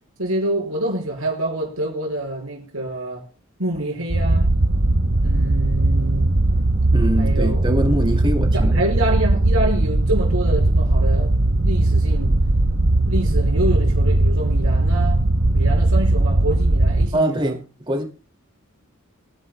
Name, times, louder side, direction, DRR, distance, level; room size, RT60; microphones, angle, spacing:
voice 1, 0.2-3.3 3.6-4.5 5.2-6.4 7.2-8.1 8.5-11.3 11.6-12.4 13.1-15.2 15.5-17.6, right 1 dB, 90° right, 5.4 m, -27 dB
sound 1, 4.1-17.1, right 2 dB, 50° right, 0.8 m, -18 dB
voice 2, 6.9-8.8 17.1-17.6 17.9-18.0, right 1 dB, 25° right, 2.4 m, -23 dB
26.0 x 9.9 x 2.2 m
head